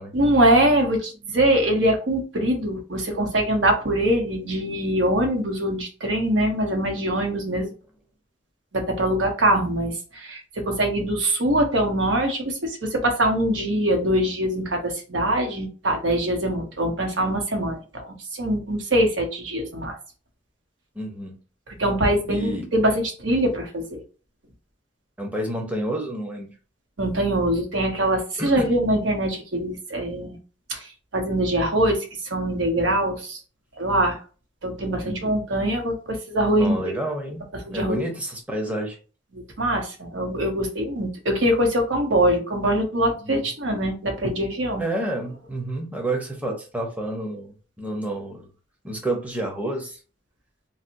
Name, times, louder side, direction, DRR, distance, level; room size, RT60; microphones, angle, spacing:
voice 1, 0.1-7.7 8.7-18.1 18.3-20.0 21.8-24.0 27.0-30.4 30.7-30.9 31.1-32.0 32.3-33.4 33.8-34.2 34.6-36.9 37.7-38.0 39.3-44.8, right 1 dB, 85° right, 3 dB, 0.9 m, -23 dB
voice 2, 20.9-21.3 22.3-22.7 25.2-26.5 28.4-28.6 32.9-33.0 35.0-35.2 36.6-37.4 37.7-39.0 43.2-43.5 44.8-48.5 48.8-50.0, right 1 dB, 10° right, 1 dB, 0.7 m, -29 dB
4.1 x 2.0 x 2.6 m, 0.36 s
head